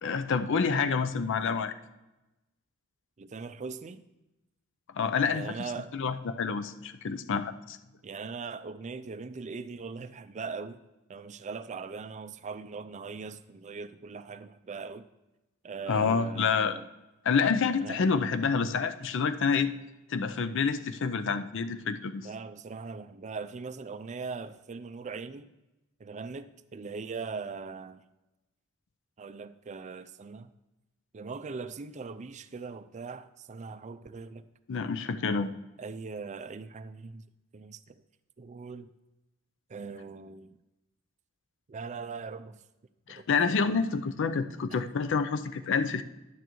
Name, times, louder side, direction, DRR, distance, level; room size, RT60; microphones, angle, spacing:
voice 1, 0.0-1.7 4.9-5.5 5.9-7.8 15.9-16.8 17.2-19.7 20.1-22.3 34.7-35.5 43.1-46.0, left 5 dB, 60° left, 0.5 m, -28 dB
voice 2, 3.2-4.0 5.3-5.9 8.0-10.8 11.1-15.1 15.6-16.9 17.8-18.0 22.2-25.5 26.0-28.0 29.2-30.5 31.1-34.4 35.8-37.2 37.5-38.0 38.4-38.9 39.7-40.6 41.7-42.6 43.1-43.2 44.7-44.8, right 4 dB, 35° right, 0.4 m, -40 dB
11.0 x 9.1 x 3.1 m
head